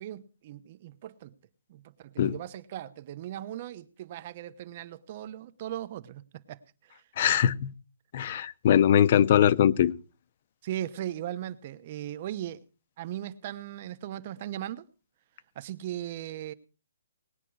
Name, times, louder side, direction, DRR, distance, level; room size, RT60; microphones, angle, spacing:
voice 1, 0.0-1.3 1.7-7.0 10.6-12.6 13.0-14.8 15.5-16.5, right 12 dB, 35° right, 0.9 m, -38 dB
voice 2, 7.2-7.7 8.1-9.9, left 10 dB, 40° left, 0.7 m, -21 dB
19.5 x 9.8 x 4.7 m
hypercardioid pair, 165°, 0 cm